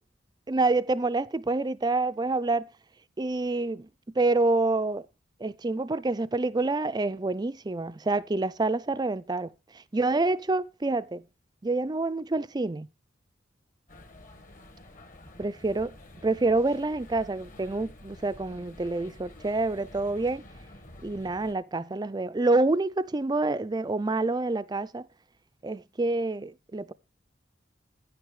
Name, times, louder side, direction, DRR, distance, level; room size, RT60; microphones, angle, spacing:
voice 1, 0.5-2.6 3.2-3.9 4.2-5.1 5.4-9.5 9.9-11.2 11.6-12.9 15.4-15.9 16.2-20.4 21.0-25.1 25.6-26.9, right 2 dB, 20° right, 0.5 m, -27 dB
sound 1, 13.9-21.5, left 1 dB, 45° left, 1.6 m, -49 dB
10.0 x 9.5 x 4.8 m
head